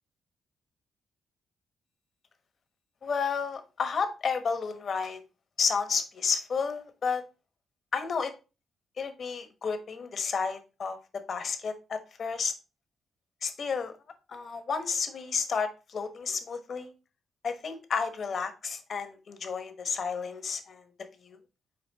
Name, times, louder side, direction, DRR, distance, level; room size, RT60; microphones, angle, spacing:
voice 1, 3.0-5.2 5.6-7.2 7.9-8.3 9.0-12.5 13.4-13.9 14.3-16.9 17.4-20.9 21.2-21.4, left 5 dB, 55° left, 8 dB, 1.1 m, -31 dB
5.9 x 4.4 x 4.0 m, 0.30 s
cardioid pair, 80°, 0 cm